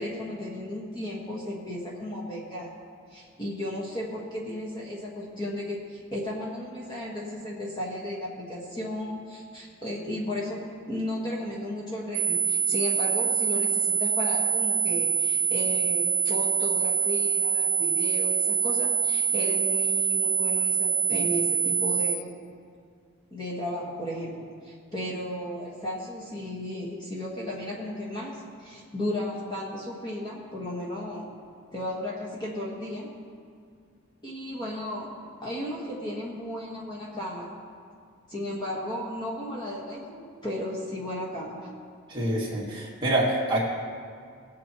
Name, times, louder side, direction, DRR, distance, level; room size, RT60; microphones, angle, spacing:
voice 1, 0.0-2.7 3.1-22.4 23.3-31.3 31.7-33.1 34.2-35.1 35.4-37.6 38.3-41.7, left 1 dB, 20° left, -5 dB, 1.5 m, -34 dB
sound 1, 12.1-22.1, right 6 dB, 65° right, 1.4 m, -25 dB
voice 2, 42.1-43.6, right 1 dB, 20° right, -6 dB, 2.2 m, -26 dB
19.5 x 8.4 x 3.1 m, 2.2 s
head